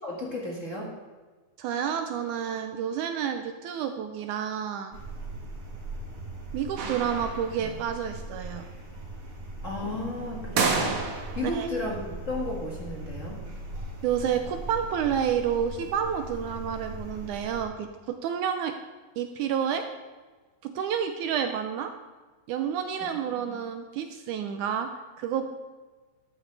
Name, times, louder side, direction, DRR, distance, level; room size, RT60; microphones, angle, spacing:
voice 1, 0.0-0.9 9.6-11.0 11.3-13.4 23.4-23.5, left 2 dB, 35° left, -3 dB, 1.3 m, -33 dB
voice 2, 1.6-5.0 6.5-8.6 11.5-11.7 14.0-17.9 18.2-18.8 19.2-19.8 20.6-21.9 22.5-24.9 25.2-25.5, right 8 dB, 80° right, 6 dB, 1.8 m, -29 dB
sound 1, 4.9-17.6, right 2 dB, 40° right, 3.5 m, -40 dB
sound 2, 6.8-7.7 10.6-11.6, right 4 dB, 60° right, 2.4 m, -29 dB
12.5 x 12.0 x 3.3 m, 1.3 s
omnidirectional pair, 4.2 m